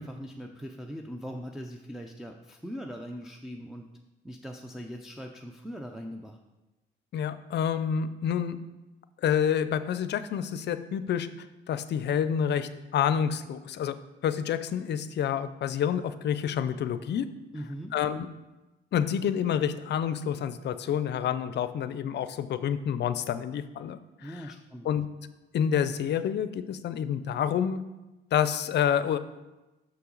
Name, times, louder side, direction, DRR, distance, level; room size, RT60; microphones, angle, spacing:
voice 1, 0.0-3.9 4.2-6.4 17.5-17.9 24.2-24.9, equal, ahead, 1 dB, 0.5 m, -40 dB
voice 2, 7.1-8.6 9.2-11.3 11.7-14.0 14.2-17.3 17.9-18.3 18.9-24.4 24.8-25.1 25.5-27.8 28.3-29.2, left 8 dB, 60° left, 13 dB, 0.5 m, -28 dB
6.3 x 5.6 x 3.9 m, 1.1 s
cardioid pair, 90°, 20 cm